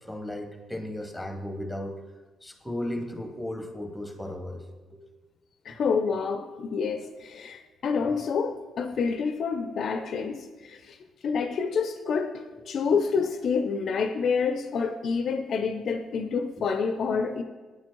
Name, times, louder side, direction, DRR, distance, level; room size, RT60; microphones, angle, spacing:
voice 1, 0.0-2.0 2.4-4.6 4.9-5.0 5.8-5.9 8.0-8.1 16.6-16.7, left 1 dB, ahead, 4 dB, 0.8 m, -35 dB
voice 2, 5.7-11.0 11.2-17.4, left 5 dB, 60° left, 8 dB, 0.4 m, -28 dB
9.1 x 4.3 x 3.0 m, 1.3 s
cardioid pair, 90°, 0 cm